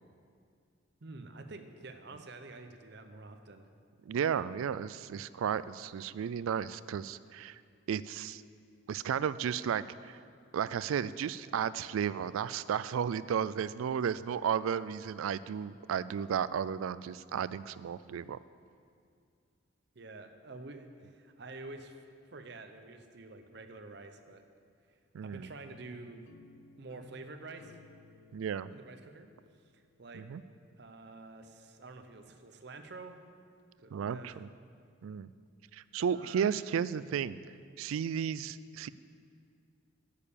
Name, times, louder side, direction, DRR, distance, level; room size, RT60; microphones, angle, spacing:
voice 1, 1.0-3.7 19.9-24.4 25.2-26.3 26.8-27.8 28.7-29.3 30.0-30.3 30.8-33.2 33.8-34.4 36.1-36.6, right 3 dB, 55° right, 7 dB, 0.7 m, -48 dB
voice 2, 4.1-7.6 7.9-8.4 8.9-10.2 10.5-18.4 25.1-25.5 28.3-28.7 30.1-30.4 33.9-34.5 35.0-35.3 35.7-37.4 37.8-38.9, right 8 dB, 85° right, 17 dB, 0.3 m, -33 dB
sound 1, 25.6-30.7, left 4 dB, 85° left, 0.5 m, -59 dB
10.5 x 6.7 x 7.0 m, 2.3 s
head